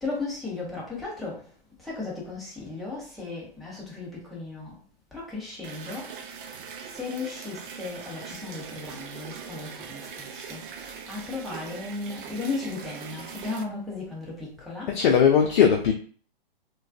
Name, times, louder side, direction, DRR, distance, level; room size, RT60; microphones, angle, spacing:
voice 1, 0.0-1.5 1.8-4.8 5.1-6.6 6.9-15.3, left 3 dB, ahead, 0.6 m, -36 dB
sound 1, 5.6-13.6, right 6 dB, 60° right, 0.5 m, -41 dB
voice 2, 14.9-15.9, left 7 dB, 55° left, 0.5 m, -19 dB
2.2 x 2.2 x 2.4 m
hypercardioid pair, 125°, 29 cm